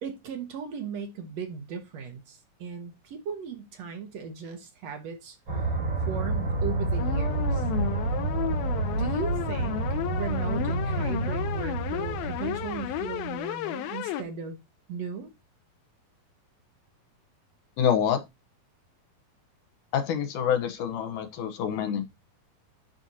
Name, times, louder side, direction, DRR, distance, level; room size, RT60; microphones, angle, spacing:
voice 1, 0.0-5.4 6.1-7.7 9.0-9.8 10.1-14.6 14.9-15.3, right 6 dB, 65° right, 1.8 m, -37 dB
sound 1, 5.5-13.3, right 2 dB, 35° right, 3.8 m, -29 dB
sound 2, 7.0-14.2, left 11 dB, 85° left, 2.6 m, -33 dB
voice 2, 17.8-18.2 19.9-22.1, left 8 dB, 65° left, 2.3 m, -26 dB
11.5 x 4.4 x 2.7 m
omnidirectional pair, 4.2 m